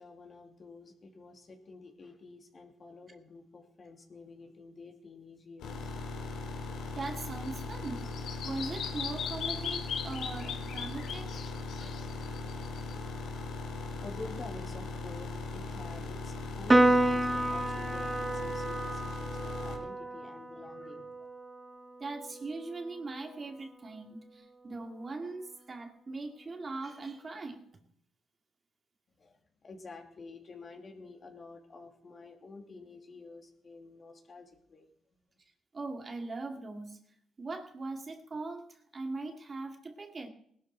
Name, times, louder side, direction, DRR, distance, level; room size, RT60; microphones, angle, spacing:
voice 1, 0.0-5.9 13.6-21.3 29.2-34.9 35.1-35.2, left 3 dB, 40° left, 2 dB, 2.9 m, -49 dB
sound 1, 5.6-19.8, left 3 dB, 90° left, 3.5 m, -39 dB
voice 2, 6.9-8.1 8.4-11.3 11.8-12.2 22.0-27.6 35.7-37.0 37.4-40.3, right 3 dB, 35° right, 4 dB, 2.3 m, -40 dB
Bird vocalization bird call bird song, 7.0-12.9, left 7 dB, 70° left, 1.3 m, -39 dB
Piano, 16.7-23.4, right 1 dB, 15° right, 0.9 m, -30 dB
19.0 x 12.0 x 4.5 m, 0.66 s
cardioid pair, 90°, 0 cm